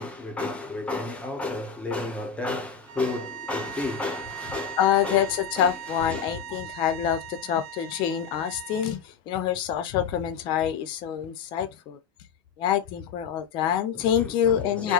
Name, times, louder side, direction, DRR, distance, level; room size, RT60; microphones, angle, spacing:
voice 1, 0.0-4.8 5.0-5.3 5.6-5.7 6.1-6.6 13.9-14.9, left 2 dB, 10° left, 0.9 m, -32 dB
sound 1, 2.8-9.0, right 9 dB, 35° right, 0.6 m, -40 dB
voice 2, 4.8-12.0 12.6-14.9, left 10 dB, 40° left, 0.7 m, -26 dB
4.7 x 2.2 x 2.4 m
supercardioid pair, 145°, 12 cm